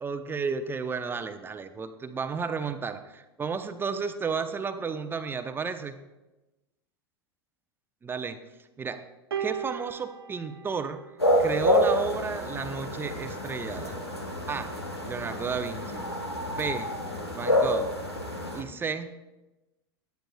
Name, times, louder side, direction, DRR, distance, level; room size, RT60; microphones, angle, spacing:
voice 1, 0.0-5.9 8.0-8.4 8.8-9.0 9.4-11.0 11.4-14.0 14.5-14.7 15.0-16.1 16.5-16.9 17.3-17.9 18.5-19.1, right 5 dB, 15° right, 8 dB, 0.7 m, -32 dB
sound 1, 9.3-11.8 12.8-13.0, right 9 dB, 70° right, 0.8 m, -37 dB
sound 2, 11.2-18.6, left 1 dB, 85° left, 1.4 m, -28 dB
17.5 x 11.5 x 2.3 m, 1.0 s
figure-of-eight pair, 85°, 13 cm